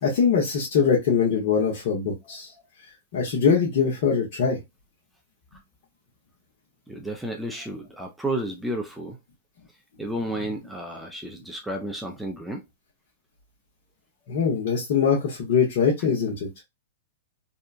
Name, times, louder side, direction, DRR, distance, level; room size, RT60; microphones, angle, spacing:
voice 1, 0.0-2.5 3.1-4.6 14.3-16.5, left 6 dB, 60° left, 1.1 m, -22 dB
voice 2, 6.9-9.2 10.0-12.6, right 1 dB, 5° right, 0.5 m, -32 dB
2.8 x 2.2 x 2.5 m
hypercardioid pair, 135°, 0 cm